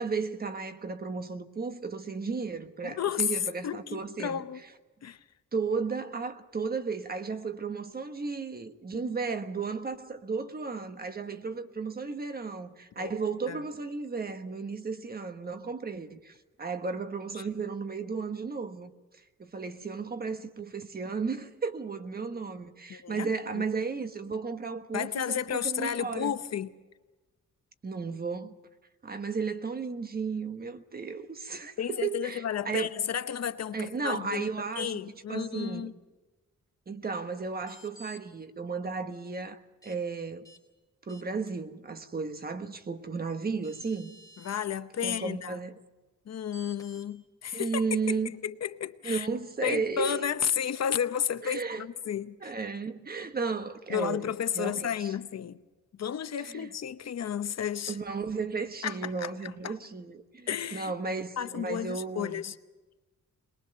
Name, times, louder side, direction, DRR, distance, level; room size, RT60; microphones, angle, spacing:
voice 1, 0.0-4.4 5.5-18.9 19.4-26.3 27.8-28.5 29.0-32.9 33.7-35.0 35.3-35.9 36.9-40.4 41.1-44.1 45.0-45.8 47.5-48.3 49.0-50.2 51.4-51.9 52.4-54.3 54.6-55.1 56.5-56.7 57.9-62.4, right 4 dB, 30° right, 1.3 m, -34 dB
voice 2, 2.8-3.3 3.6-4.6 5.0-5.2 13.0-13.1 13.5-13.6 17.3-17.4 22.9-23.6 24.9-26.7 31.8-34.5 34.8-35.9 44.4-45.6 46.3-49.3 49.6-52.5 53.9-55.6 56.0-58.0 58.8-59.8 60.5-60.9 61.4-62.5, left 8 dB, 60° left, 0.9 m, -32 dB
sound 1, 37.6-38.2 39.8-40.0 40.4-40.6 41.1-41.5 43.2-43.3 43.6-44.6 46.5-47.1, equal, 10° left, 3.6 m, -52 dB
22.5 x 21.5 x 6.8 m
wide cardioid pair, 150°, 30 cm